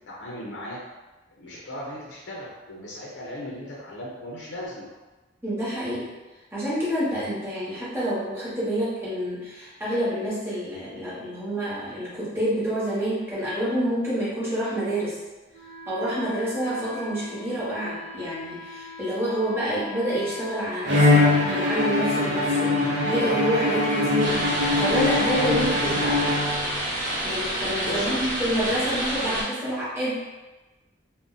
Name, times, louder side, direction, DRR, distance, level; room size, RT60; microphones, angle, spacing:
voice 1, 0.1-0.8 1.4-4.9 17.5-17.6 27.8-28.2, left 1 dB, 65° left, -4 dB, 0.5 m, -37 dB
voice 2, 5.4-6.1 6.5-15.2 15.9-24.4 24.7-26.3 27.2-30.1, equal, 15° right, -10 dB, 1.0 m, -28 dB
Wind instrument woodwind instrument, 15.5-21.7, left 3 dB, 25° left, 0.8 m, -41 dB
Bowed string instrument, 20.8-26.9, left 2 dB, 80° right, 0.6 m, -22 dB
sound 1, 24.2-29.4, right 1 dB, 45° right, 0.9 m, -29 dB
2.5 x 2.1 x 3.7 m, 1.2 s
head